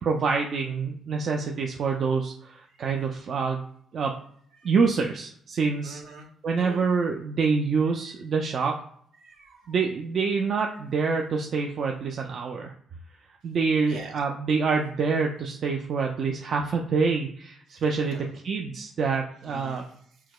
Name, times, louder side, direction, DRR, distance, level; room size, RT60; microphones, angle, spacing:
voice 1, 0.0-3.6 3.9-4.1 4.6-6.0 6.4-8.8 9.7-12.7 13.4-19.8, right 5 dB, 60° right, 1 dB, 0.3 m, -26 dB
voice 2, 5.8-6.3 6.6-6.9 8.0-8.2 9.2-9.7 13.9-14.2 17.7-17.8 18.1-18.3 19.4-20.3, right 3 dB, 80° right, 0 dB, 0.8 m, -46 dB
4.5 x 2.1 x 2.3 m, 0.64 s
supercardioid pair, 65°, 0 cm